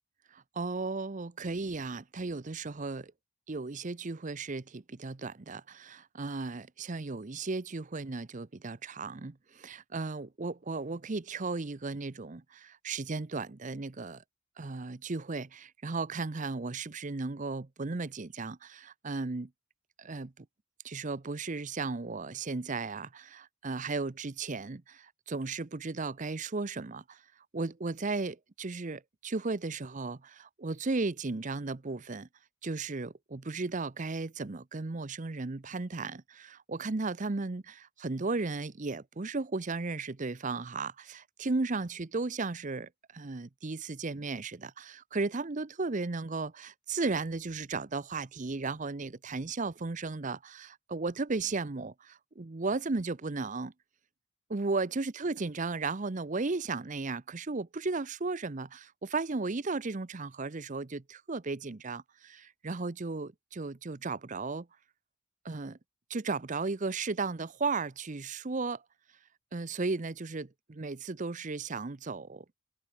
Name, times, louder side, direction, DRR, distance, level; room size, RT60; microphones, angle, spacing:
voice 1, 0.3-3.1 3.5-14.2 14.6-19.5 20.0-20.5 20.8-27.2 27.5-32.3 32.6-53.7 54.5-64.7 65.4-65.8 66.1-68.8 69.5-72.4, right 3 dB, 35° right, 0.7 m, -35 dB
head